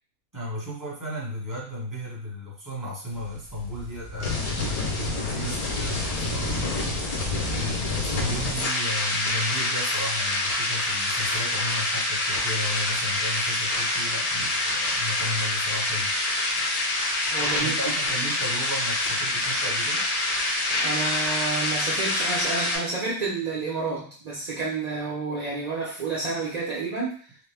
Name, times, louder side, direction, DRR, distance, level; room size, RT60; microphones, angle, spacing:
voice 1, 0.3-16.1 17.6-20.1, left 1 dB, 15° right, -5 dB, 0.9 m, -34 dB
sound 1, 3.1-22.8, left 2 dB, 50° left, 0.4 m, -27 dB
voice 2, 17.3-17.7 20.8-27.2, right 3 dB, 55° right, -5 dB, 0.4 m, -29 dB
2.9 x 2.1 x 3.3 m, 0.43 s
omnidirectional pair, 1.5 m